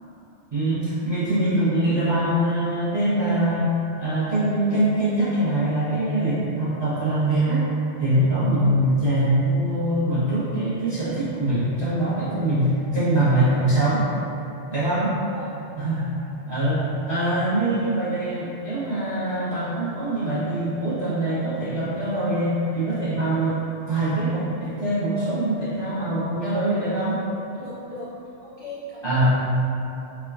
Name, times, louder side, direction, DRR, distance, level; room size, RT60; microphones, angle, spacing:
voice 1, 0.5-3.7 4.0-7.7 8.0-14.0 14.7-15.1 15.7-16.1 16.5-23.6 23.9-27.2 29.0-29.3, right 1 dB, 30° right, -12 dB, 0.5 m, -23 dB
voice 2, 14.7-15.5 27.5-28.1 28.4-29.3, left 1 dB, 55° left, -11 dB, 0.4 m, -39 dB
3.2 x 2.1 x 2.3 m, 2.8 s
omnidirectional pair, 1.2 m